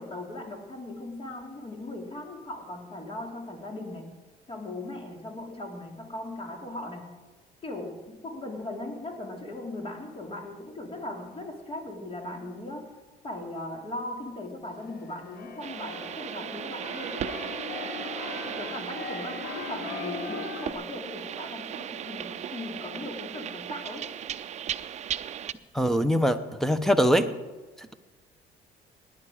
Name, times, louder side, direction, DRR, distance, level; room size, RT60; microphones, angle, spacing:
voice 1, 0.0-4.1 4.5-7.1 7.6-12.9 13.2-17.4 18.4-24.1, left 1 dB, 35° left, 3 dB, 2.8 m, -38 dB
Keyboard (musical), 14.8-20.7, left 5 dB, 65° left, 1.3 m, -39 dB
sound 1, 15.6-25.5, right 9 dB, 45° right, 0.5 m, -37 dB
voice 2, 25.7-27.3 27.8-27.9, equal, ahead, 11 dB, 0.8 m, -23 dB
17.0 x 10.0 x 5.0 m, 1.2 s
cardioid pair, 110°, 17 cm